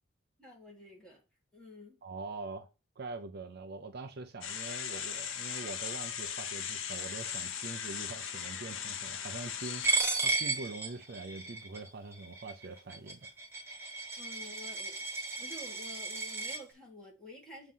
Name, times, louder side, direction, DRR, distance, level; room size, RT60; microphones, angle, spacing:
voice 1, 0.4-1.2 1.5-2.0 14.2-15.1 15.4-17.7, left 1 dB, 5° left, 1.9 m, -50 dB
voice 2, 2.0-2.7 3.0-13.3, right 3 dB, 50° right, 0.5 m, -44 dB
sound 1, 4.4-10.0, left 8 dB, 65° left, 0.7 m, -38 dB
Coin (dropping), 9.8-16.6, right 3 dB, 10° right, 1.2 m, -34 dB
7.3 x 3.0 x 5.4 m
head